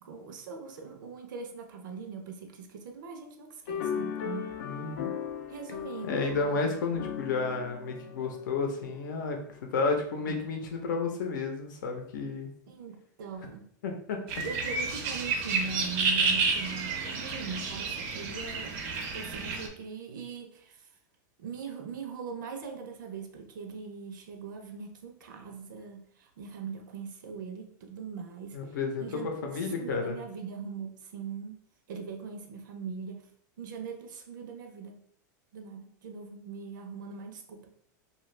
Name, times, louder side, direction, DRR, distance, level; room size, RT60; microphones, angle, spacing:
voice 1, 0.0-4.6 5.5-6.6 6.9-7.1 10.3-10.4 12.7-13.7 14.4-18.9 19.1-20.9 21.4-31.6 31.9-33.3 33.6-35.0 35.5-37.7, right 5 dB, 90° right, 5 dB, 0.6 m, -41 dB
sound 1, 3.7-9.2, left 8 dB, 50° left, 0.3 m, -37 dB
voice 2, 4.6-5.1 6.0-12.5 13.8-14.2 28.5-30.2, left 4 dB, 80° left, 3 dB, 0.7 m, -32 dB
sound 2, 14.3-19.7, right 4 dB, 35° right, 0.4 m, -30 dB
2.8 x 2.3 x 3.2 m, 0.65 s
supercardioid pair, 170°, 10 cm